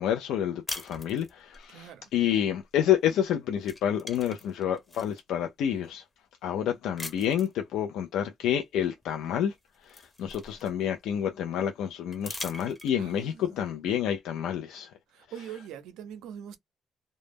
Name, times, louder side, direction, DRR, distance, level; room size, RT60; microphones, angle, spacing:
voice 1, 0.0-6.0 6.4-9.5 9.8-14.9 15.4-15.5, left 10 dB, 85° left, 0.3 m, -29 dB
sound 1, 0.7-1.7 3.1-3.3 3.6-5.2 5.8-5.9 7.0-7.6 9.0-9.1 9.5-11.0 12.1-13.2, left 2 dB, 15° left, 0.8 m, -41 dB
voice 2, 1.7-2.1 13.0-13.5 15.1-16.6, right 9 dB, 90° right, 0.4 m, -43 dB
2.1 x 2.0 x 3.2 m
cardioid pair, 90°, 0 cm